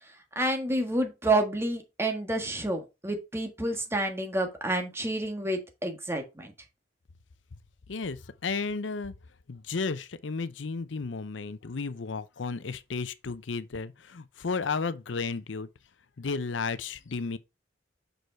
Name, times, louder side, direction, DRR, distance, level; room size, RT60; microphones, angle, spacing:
voice 1, 0.3-6.5, right 1 dB, 15° right, 1.5 m, -29 dB
voice 2, 7.9-9.1 9.5-15.7 16.2-17.4, left 4 dB, 80° left, 0.6 m, -33 dB
6.3 x 5.3 x 4.5 m
head